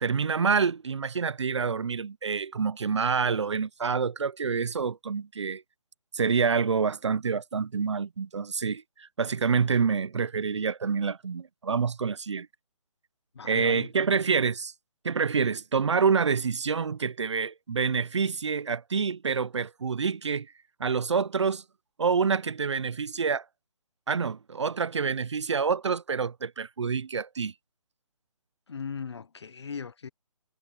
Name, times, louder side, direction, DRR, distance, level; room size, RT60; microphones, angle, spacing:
voice 1, 0.0-5.6 6.1-12.5 13.4-14.7 15.0-20.5 20.8-21.6 22.0-23.4 24.1-27.5, right 5 dB, 50° right, 0.5 m, -27 dB
voice 2, 13.3-13.9 28.7-30.1, left 6 dB, 45° left, 0.6 m, -38 dB
hypercardioid pair, 175°, 19 cm